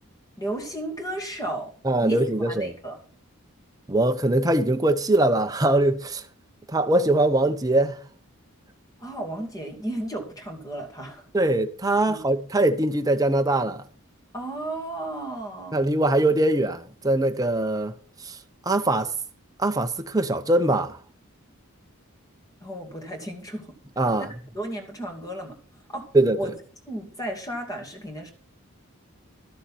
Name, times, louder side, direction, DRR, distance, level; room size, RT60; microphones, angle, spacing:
voice 1, 0.4-1.7 2.0-3.0 9.0-11.2 12.1-12.2 14.3-15.8 22.6-23.7 24.5-25.5 25.9-26.5 26.9-28.3, right 1 dB, 15° left, 2.3 m, -34 dB
voice 2, 1.8-2.7 3.9-6.2 6.7-8.0 11.3-13.8 15.7-17.9 18.2-18.4 18.7-19.1 19.6-21.0 24.0-24.3 26.1-26.4, right 1 dB, 15° right, 0.8 m, -22 dB
13.0 x 7.3 x 6.0 m
head